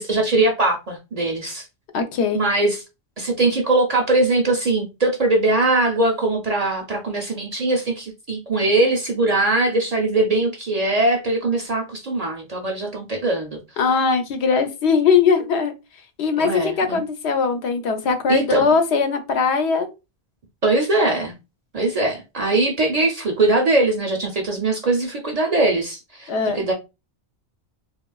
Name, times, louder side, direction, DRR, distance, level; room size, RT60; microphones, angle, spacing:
voice 1, 0.0-1.7 2.3-2.8 3.2-13.6 16.4-17.0 18.3-18.7 20.6-21.3 21.7-26.7, right 2 dB, 50° right, 0.5 m, -21 dB
voice 2, 1.9-2.4 13.8-15.7 16.2-19.9 26.3-26.6, left 5 dB, 80° left, 0.9 m, -20 dB
3.0 x 2.2 x 2.2 m
omnidirectional pair, 1.1 m